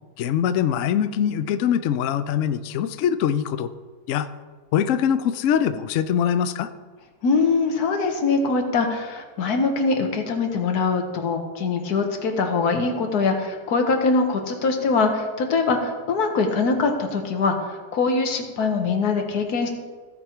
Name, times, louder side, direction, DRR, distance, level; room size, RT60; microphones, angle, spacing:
voice 1, 0.2-3.7 4.1-4.3 4.7-6.7, left 9 dB, 70° left, 11 dB, 0.8 m, -23 dB
voice 2, 7.2-19.7, left 4 dB, 90° left, 4 dB, 1.6 m, -23 dB
15.5 x 5.4 x 4.4 m, 1.4 s
omnidirectional pair, 1.6 m